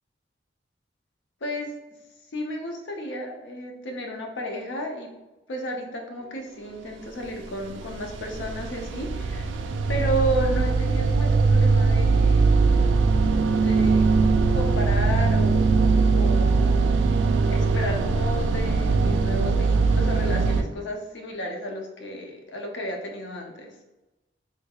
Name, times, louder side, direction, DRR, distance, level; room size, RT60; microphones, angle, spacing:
voice 1, 2.3-5.1 5.5-9.5 9.9-12.6 13.6-14.1 14.5-17.1 17.5-23.7, equal, 65° left, 2 dB, 0.6 m, -32 dB
sound 1, 7.4-20.6, right 4 dB, 75° right, 0.3 m, -21 dB
3.3 x 3.2 x 2.3 m, 1.1 s
head